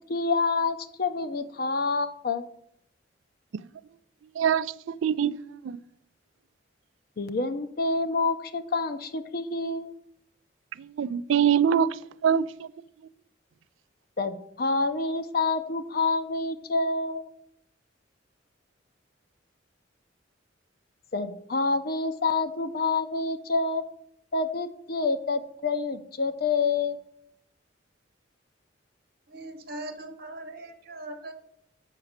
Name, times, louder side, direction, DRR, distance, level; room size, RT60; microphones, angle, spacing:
voice 1, 0.1-2.4 7.2-9.9 14.2-17.3 21.1-23.8 24.3-27.0, left 3 dB, 50° left, 0.6 m, -27 dB
voice 2, 4.4-4.7 5.0-5.3 5.6-5.8 10.8-11.9 12.2-12.7, right 8 dB, 85° right, 0.3 m, -23 dB
voice 3, 29.3-31.3, right 1 dB, 50° right, 1.1 m, -40 dB
7.4 x 5.9 x 6.5 m
head